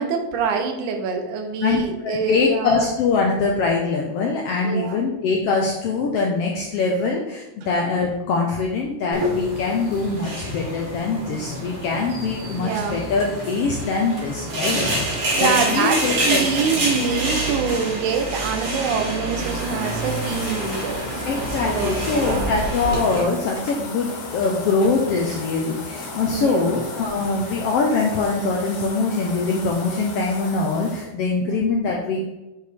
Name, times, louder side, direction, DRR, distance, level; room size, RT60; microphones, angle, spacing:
voice 1, 0.0-2.9 4.6-5.0 12.6-13.0 15.4-22.6 26.3-26.7 31.4-31.8, right 6 dB, 80° right, 4 dB, 2.3 m, -25 dB
voice 2, 1.6-16.4 21.3-32.2, left 4 dB, 75° left, 0 dB, 1.4 m, -23 dB
sound 1, 9.1-23.2, right 1 dB, 55° right, 3.2 m, -27 dB
sound 2, 12.7-12.9 13.2-13.3 14.2-15.2 15.5-15.6 15.8-16.1 16.7-18.1 18.4-19.5 19.8-21.3 21.6-23.3 23.6-24.6 24.8-24.9 25.3-25.4 26.0-26.1, equal, 20° left, 0.9 m, -45 dB
sound 3, 19.3-31.1, left 2 dB, 55° left, 1.4 m, -35 dB
8.1 x 4.8 x 3.5 m, 1.0 s
omnidirectional pair, 3.6 m